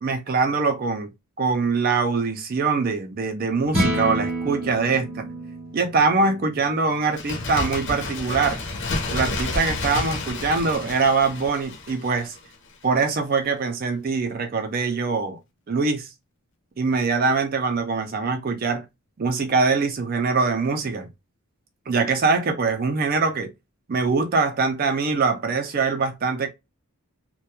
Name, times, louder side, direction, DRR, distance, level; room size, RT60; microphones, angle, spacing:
voice 1, 0.0-1.1 1.4-5.3 5.7-8.6 9.1-12.4 12.8-15.4 15.7-16.1 16.8-18.8 19.2-21.1 21.9-23.5 23.9-26.5, right 4 dB, 40° right, 0.4 m, -23 dB
sound 1, 3.6-10.0, right 1 dB, 5° right, 1.2 m, -31 dB
Bird, 7.0-12.5 12.8-12.9, left 2 dB, 55° left, 0.6 m, -30 dB
2.8 x 2.2 x 2.2 m
head